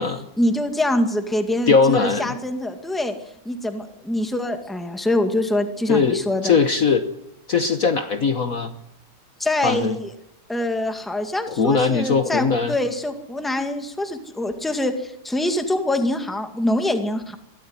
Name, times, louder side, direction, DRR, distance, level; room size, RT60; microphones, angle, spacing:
voice 1, 0.4-3.1 3.5-6.6 9.4-10.1 10.5-17.4, left 1 dB, ahead, 6 dB, 1.8 m, -24 dB
voice 2, 1.7-2.3 5.9-7.1 7.5-8.7 9.6-9.9 11.5-12.8, left 5 dB, 50° left, 8 dB, 1.5 m, -20 dB
22.0 x 13.5 x 9.7 m, 0.85 s
omnidirectional pair, 2.1 m